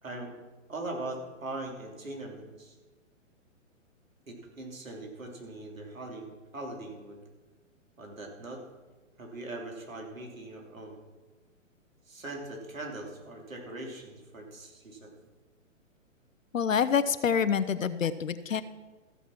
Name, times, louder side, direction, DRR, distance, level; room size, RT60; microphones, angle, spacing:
voice 1, 0.0-0.3 0.7-2.8 4.3-7.2 8.0-8.6 9.2-11.0 12.0-15.1, right 2 dB, 75° right, 1 dB, 3.2 m, -41 dB
voice 2, 16.5-18.6, left 7 dB, 75° left, 12 dB, 0.7 m, -27 dB
14.5 x 7.0 x 5.9 m, 1.2 s
figure-of-eight pair, 125°, 40 cm